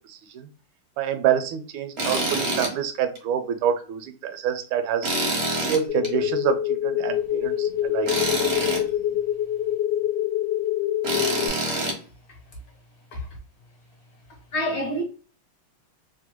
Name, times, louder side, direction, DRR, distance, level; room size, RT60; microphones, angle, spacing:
voice 1, 0.1-0.5 1.0-5.1 5.6-8.1, right 9 dB, 85° right, 1.4 m, -27 dB
Tools, 2.0-2.7 3.1-3.2 5.0-6.1 8.1-8.8 11.0-12.0, right 2 dB, 60° right, 0.6 m, -26 dB
sound 1, 5.9-11.5, left 11 dB, 80° left, 1.3 m, -25 dB
voice 2, 14.5-15.0, equal, 55° left, 1.2 m, -27 dB
3.4 x 2.2 x 2.9 m
omnidirectional pair, 2.2 m